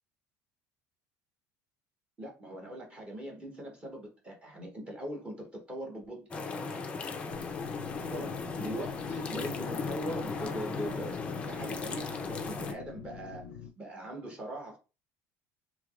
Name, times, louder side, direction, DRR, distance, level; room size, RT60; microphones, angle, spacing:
voice 1, 2.2-6.3 8.0-13.4 13.8-14.8, equal, 15° right, 0.9 m, -41 dB
sound 1, 6.3-12.7, left 4 dB, 15° left, 0.4 m, -37 dB
sound 2, 7.3-13.7, left 6 dB, 80° left, 0.4 m, -46 dB
3.2 x 3.0 x 2.4 m
cardioid pair, 155°, 7 cm